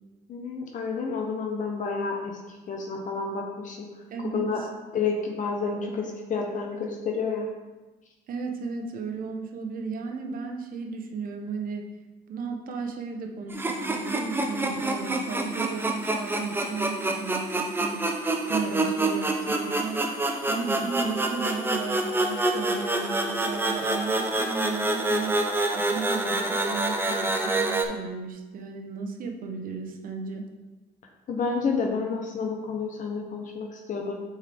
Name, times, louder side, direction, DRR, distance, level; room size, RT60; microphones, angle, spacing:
voice 1, 0.3-3.9 4.3-7.5 31.3-34.2, left 4 dB, 50° left, 1 dB, 0.9 m, -30 dB
voice 2, 4.1-4.5 8.3-11.9 12.3-18.2 18.5-25.5 25.7-30.4, right 4 dB, 55° right, 3 dB, 1.0 m, -34 dB
sound 1, 13.5-27.8, right 2 dB, 10° right, 0.7 m, -27 dB
7.9 x 4.6 x 3.5 m, 1.2 s
cardioid pair, 110°, 17 cm